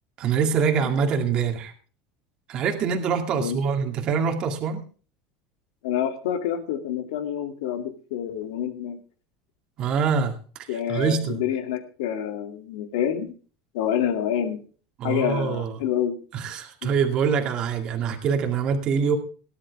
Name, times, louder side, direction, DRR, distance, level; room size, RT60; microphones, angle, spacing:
voice 1, 0.2-1.7 2.5-4.8 9.8-11.4 15.0-15.8 16.3-19.2, right 6 dB, 35° right, 4 dB, 2.3 m, -25 dB
voice 2, 5.8-9.0 10.7-13.3 13.7-14.6 15.0-16.1 16.8-16.9, left 9 dB, 85° left, 6 dB, 2.7 m, -27 dB
18.5 x 11.0 x 3.5 m, 0.39 s
cardioid pair, 155°, 2 cm